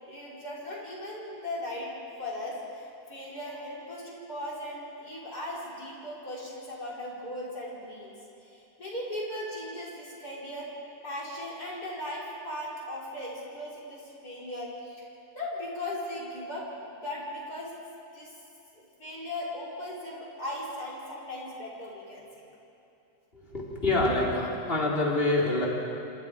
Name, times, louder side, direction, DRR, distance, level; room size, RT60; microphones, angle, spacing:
voice 1, 0.0-1.9 2.2-8.1 8.4-10.7 11.0-15.0 15.3-17.7 18.1-18.3 18.7-22.3, left 1 dB, 75° left, -5 dB, 6.0 m, -38 dB
voice 2, 23.5-25.7, left 2 dB, 35° left, -3 dB, 4.0 m, -26 dB
28.0 x 26.5 x 5.1 m, 2.8 s
omnidirectional pair, 1.7 m